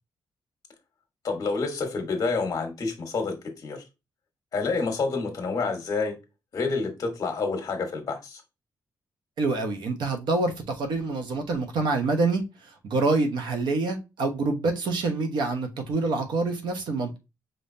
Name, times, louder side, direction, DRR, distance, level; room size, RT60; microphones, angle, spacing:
voice 1, 1.2-3.3 3.6-3.8 4.5-6.2 6.5-8.4, left 4 dB, 45° left, 1.3 m, -28 dB
voice 2, 9.4-12.4 12.8-17.2, right 3 dB, 70° right, 1.0 m, -26 dB
5.3 x 2.7 x 2.7 m
wide cardioid pair, 150°, 8 cm